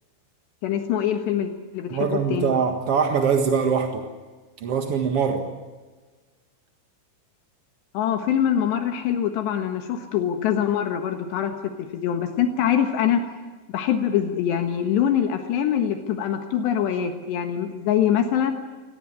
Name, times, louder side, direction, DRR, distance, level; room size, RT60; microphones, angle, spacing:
voice 1, 0.6-2.5 7.9-13.2 13.7-18.5, left 9 dB, 75° left, 6 dB, 3.5 m, -24 dB
voice 2, 1.9-4.0 4.6-5.5, right 6 dB, 60° right, 5 dB, 1.6 m, -22 dB
24.0 x 18.5 x 9.8 m, 1.3 s
omnidirectional pair, 5.1 m